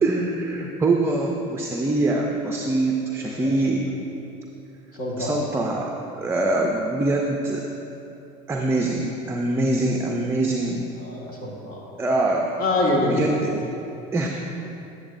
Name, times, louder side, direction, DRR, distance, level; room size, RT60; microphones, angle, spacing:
voice 1, 0.0-3.9 5.2-7.6 8.5-10.9 12.0-12.5 13.0-13.5 14.1-14.3, right 2 dB, 15° right, 1 dB, 0.5 m, -24 dB
voice 2, 4.9-5.3 11.0-11.8 12.6-13.4, left 1 dB, 55° left, -3 dB, 1.7 m, -25 dB
9.4 x 7.9 x 2.6 m, 2.9 s
supercardioid pair, 115°, 18 cm